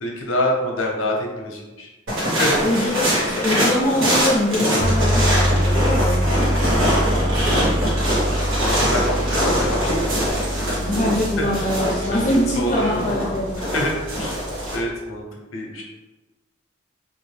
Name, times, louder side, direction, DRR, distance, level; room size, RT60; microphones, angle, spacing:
voice 1, 0.0-1.9 2.1-3.0 8.5-10.1 11.4-11.7 12.1-12.2 12.5-14.4 14.7-15.3 15.5-15.8, left 1 dB, 85° left, 0 dB, 0.7 m, -26 dB
sound 1, 2.1-14.8, equal, 85° right, 1.2 m, -23 dB
voice 2, 2.6-6.5 10.8-13.6, left 1 dB, 35° left, -5 dB, 0.5 m, -23 dB
sound 2, 4.8-14.9, equal, 60° right, 0.7 m, -25 dB
3.1 x 2.5 x 3.3 m, 1.1 s
head